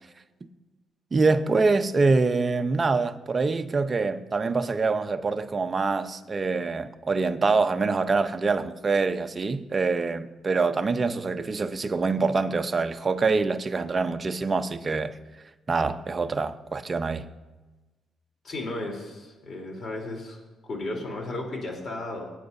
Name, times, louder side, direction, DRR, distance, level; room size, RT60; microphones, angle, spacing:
voice 1, 1.1-15.1 15.7-17.3, right 4 dB, 30° right, 0.8 m, -25 dB
voice 2, 18.4-22.3, left 2 dB, 45° left, 3.5 m, -34 dB
24.0 x 9.0 x 2.7 m
cardioid pair, 90°, 0 cm